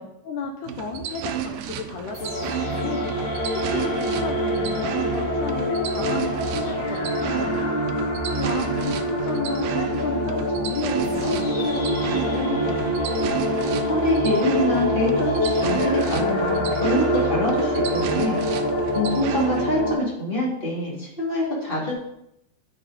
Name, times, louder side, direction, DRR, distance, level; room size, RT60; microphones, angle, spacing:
voice 1, 0.0-7.7 8.4-12.9, left 4 dB, 85° left, 3 dB, 1.8 m, -33 dB
sound 1, 0.6-19.8, right 10 dB, 80° right, 2.1 m, -33 dB
sound 2, 2.1-19.9, equal, 65° left, 5.5 m, -25 dB
voice 2, 13.9-18.4 18.9-21.9, left 1 dB, 15° left, -5 dB, 2.2 m, -25 dB
10.0 x 8.0 x 4.2 m, 0.80 s
omnidirectional pair, 4.8 m